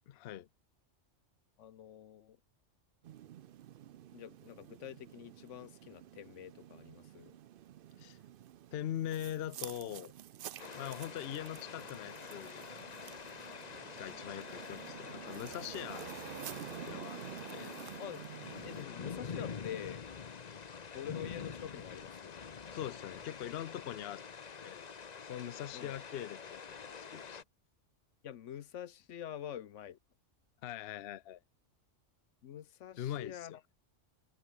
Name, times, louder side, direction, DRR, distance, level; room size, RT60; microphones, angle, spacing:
voice 1, 0.1-0.5 8.0-8.2 8.7-10.1 10.7-12.6 14.0-16.1 16.9-17.2 17.5-17.8 20.5-20.7 22.7-24.2 24.6-24.9 25.3-26.6 26.9-27.4 30.6-31.4 33.0-33.6, left 11 dB, 60° left, 0.8 m, -42 dB
voice 2, 1.6-2.4 4.1-7.3 18.0-18.3 18.6-20.0 20.9-22.4 25.7-26.0 28.2-30.0 32.4-33.6, left 10 dB, 80° left, 1.1 m, -46 dB
sound 1, 3.0-18.9, right 12 dB, 60° right, 0.6 m, -50 dB
sound 2, 10.6-27.4, left 6 dB, 40° left, 0.9 m, -46 dB
omnidirectional pair, 1.3 m